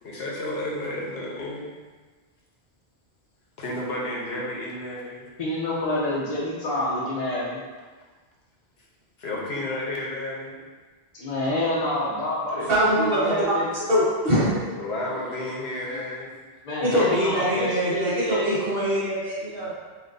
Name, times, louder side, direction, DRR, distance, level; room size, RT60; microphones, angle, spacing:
voice 1, 0.0-1.7 3.6-5.3 9.2-10.6 11.5-11.6 14.8-16.3 19.4-19.8, left 1 dB, 80° left, -3 dB, 1.2 m, -32 dB
voice 2, 5.4-7.6 11.1-13.7 16.6-18.6, left 1 dB, 45° left, -6 dB, 0.7 m, -27 dB
voice 3, 12.6-13.3 13.7-14.6 15.2-15.3 16.8-19.8, equal, 65° right, -11 dB, 1.5 m, -23 dB
7.6 x 2.6 x 2.6 m, 1.4 s
omnidirectional pair, 1.0 m